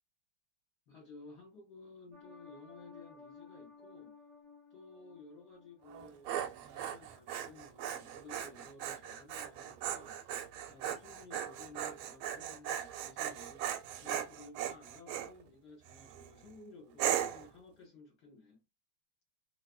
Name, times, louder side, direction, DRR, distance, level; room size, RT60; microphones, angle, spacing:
voice 1, 0.9-4.1 4.7-18.6, left 3 dB, 55° left, 1.6 m, -55 dB
sound 1, 2.1-6.3 6.7-6.8, left 4 dB, 55° right, 0.4 m, -56 dB
Dog, 5.9-15.3 15.9-16.3 17.0-17.5, right 10 dB, 85° right, 1.5 m, -38 dB
3.5 x 2.5 x 2.3 m
omnidirectional pair, 2.3 m